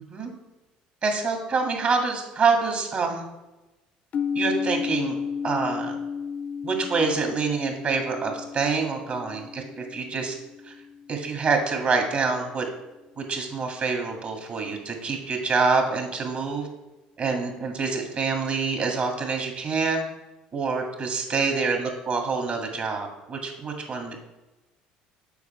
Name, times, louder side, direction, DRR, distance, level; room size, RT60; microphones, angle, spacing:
voice 1, 1.0-3.3 4.3-5.2 5.4-5.9 6.6-9.6 9.9-10.4 10.7-10.8 11.1-12.6 13.2-16.7 17.2-20.0 20.5-24.2, right 4 dB, 45° right, 3 dB, 1.8 m, -26 dB
sound 1, 4.1-11.9, left 6 dB, 50° left, 0.5 m, -33 dB
7.1 x 5.0 x 4.2 m, 1.0 s
supercardioid pair, 80°, 3 cm